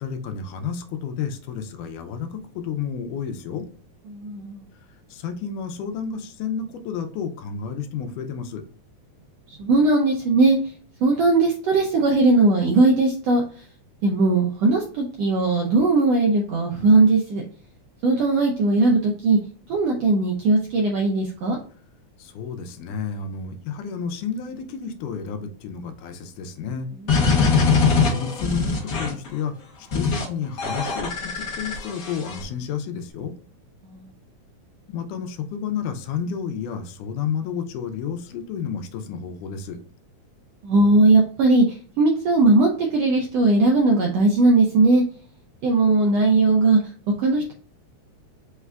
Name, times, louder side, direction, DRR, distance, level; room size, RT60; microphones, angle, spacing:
voice 1, 0.0-3.7 5.1-8.6 22.2-26.9 28.1-29.5 29.8-33.3 34.9-39.8, left 7 dB, 85° left, 6 dB, 2.2 m, -31 dB
voice 2, 4.1-4.6 9.6-10.6 11.0-13.4 14.0-17.4 18.0-19.4 19.7-21.6 33.8-34.0 40.6-45.0 45.6-46.8 47.2-47.5, right 3 dB, 80° right, 0 dB, 1.4 m, -19 dB
sound 1, 27.1-29.3 29.9-30.2 30.6-32.4, left 5 dB, 70° left, 1.0 m, -22 dB
5.2 x 2.4 x 3.3 m, 0.43 s
omnidirectional pair, 3.6 m